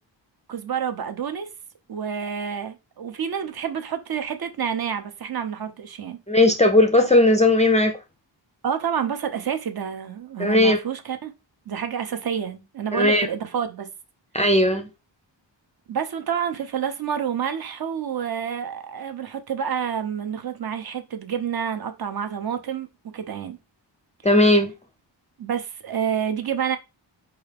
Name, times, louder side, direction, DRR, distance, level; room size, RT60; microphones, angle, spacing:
voice 1, 0.5-1.5 1.9-6.2 8.6-11.3 11.7-13.9 15.9-22.9 23.1-23.6 25.4-26.8, right 8 dB, 50° right, 0.6 m, -28 dB
voice 2, 6.3-7.9 10.4-10.8 12.9-13.3 14.3-14.9 24.2-24.7, left 1 dB, 15° left, 0.4 m, -17 dB
4.6 x 2.4 x 3.3 m
wide cardioid pair, 150°, 46 cm